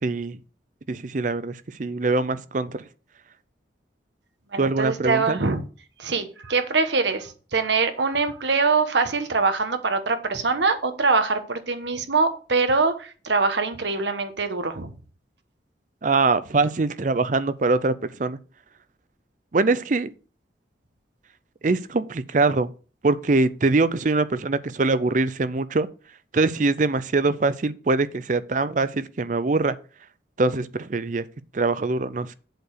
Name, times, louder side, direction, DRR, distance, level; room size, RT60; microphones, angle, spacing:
voice 1, 0.0-0.4 0.9-2.9 4.6-5.4 16.0-18.4 19.5-20.1 21.6-22.7 23.0-25.9 26.3-29.8 30.4-31.3 31.5-32.4, right 3 dB, 45° right, 0.5 m, -23 dB
voice 2, 4.5-5.6 6.0-14.9, right 4 dB, 75° right, 1.1 m, -23 dB
7.8 x 4.7 x 6.7 m
head